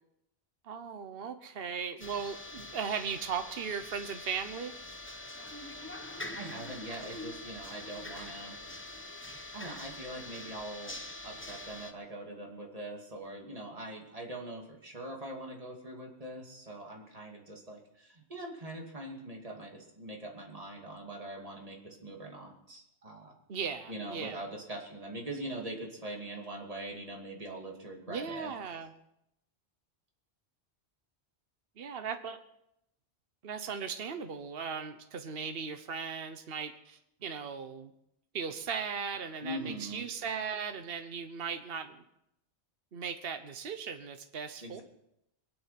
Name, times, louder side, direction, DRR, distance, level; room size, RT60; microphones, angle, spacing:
voice 1, 0.6-4.7 23.5-24.4 28.1-28.9 31.8-32.4 33.4-37.9 38.3-42.0 42.9-44.8, right 6 dB, 60° right, 8 dB, 1.2 m, -37 dB
sound 1, 2.0-11.9, left 2 dB, 10° left, 1.0 m, -44 dB
voice 2, 6.3-8.6 9.3-11.0 11.2-23.3 23.9-28.5 39.4-40.0 44.6-44.8, right 1 dB, 35° right, 0 dB, 2.7 m, -42 dB
23.0 x 10.5 x 5.9 m, 0.82 s
omnidirectional pair, 1.1 m